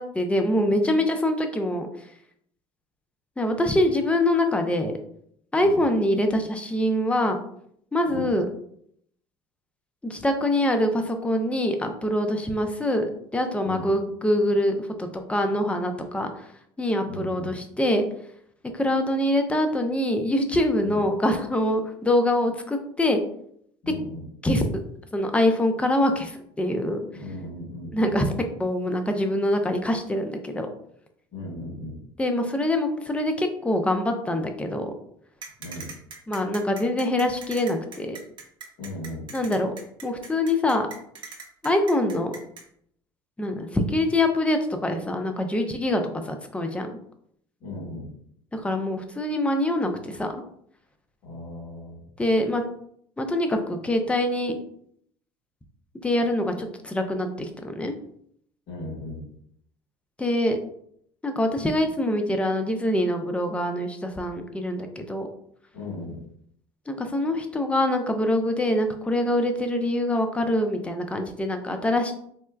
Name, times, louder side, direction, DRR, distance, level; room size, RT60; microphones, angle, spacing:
voice 1, 0.0-1.9 3.4-4.9 5.5-7.4 7.9-8.5 10.0-16.5 16.8-18.0 18.7-23.2 24.4-24.7 25.1-27.0 27.9-28.3 28.6-30.7 32.2-34.9 36.3-38.2 39.3-39.7 40.0-40.9 41.6-42.3 43.4-46.9 48.5-50.4 52.2-52.6 53.2-54.6 56.0-57.9 60.2-60.6 61.2-65.3 66.9-72.1, left 1 dB, 10° left, 6 dB, 0.5 m, -24 dB
voice 2, 17.1-17.5 20.8-21.0 23.8-24.3 27.1-28.2 31.3-32.0 35.6-35.9 38.8-39.3 47.6-48.1 51.2-52.0 58.7-59.3 65.7-66.2, left 1 dB, 65° left, -10 dB, 1.4 m, -37 dB
sound 1, 35.4-42.6, right 5 dB, 35° right, 0.8 m, -41 dB
4.2 x 2.2 x 2.2 m, 0.67 s
hypercardioid pair, 70°, 13 cm